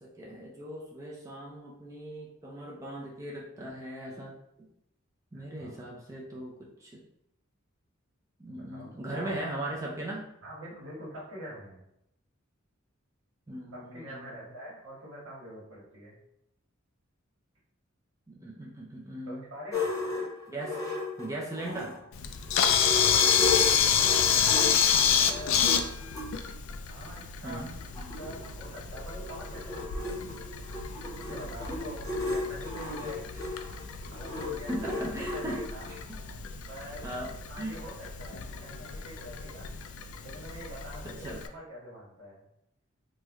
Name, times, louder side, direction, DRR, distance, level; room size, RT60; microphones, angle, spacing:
voice 1, 0.0-4.7 5.3-6.6 6.8-7.0 8.4-10.3 13.5-14.4 18.3-19.4 20.5-20.8 21.2-21.9 27.4-27.8 34.7-35.6 36.1-36.2 37.0-37.8 41.2-41.4, right 1 dB, 15° right, -4 dB, 0.4 m, -38 dB
voice 2, 5.3-5.9 8.5-9.4 10.4-11.8 13.7-16.2 19.2-19.9 24.5-25.7 26.9-30.3 31.2-33.3 34.1-35.9 36.7-37.1 37.5-39.7 40.2-42.4, equal, 80° right, -6 dB, 1.1 m, -45 dB
sound 1, 19.7-22.0 22.4-26.3 27.0-27.1 27.4-27.5 27.7-36.0, left 3 dB, 15° left, 0.8 m, -35 dB
Camera, 22.1-41.5, left 7 dB, 70° left, 0.3 m, -29 dB
3.1 x 2.1 x 3.4 m, 0.80 s
head